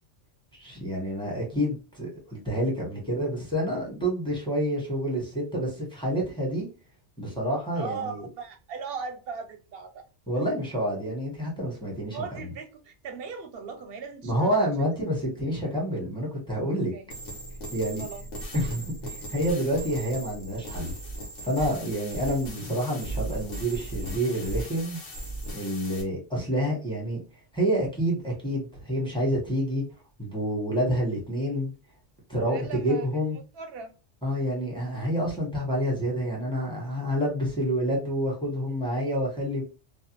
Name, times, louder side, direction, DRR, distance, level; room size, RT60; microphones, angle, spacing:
voice 1, 0.5-6.7 7.2-8.2 10.3-12.5 14.2-16.9 17.7-18.0 18.5-20.9 21.4-25.0 25.5-27.2 27.5-29.8 30.2-31.7 32.3-33.4 34.2-39.6, equal, 5° left, 1.0 m, -28 dB
voice 2, 7.8-10.1 12.1-14.9 16.9-17.1 17.9-18.3 32.5-33.1 33.5-33.9, right 5 dB, 60° right, 0.7 m, -38 dB
sound 1, 17.1-26.0, right 1 dB, 55° left, 1.0 m, -37 dB
2.5 x 2.2 x 2.8 m
omnidirectional pair, 1.2 m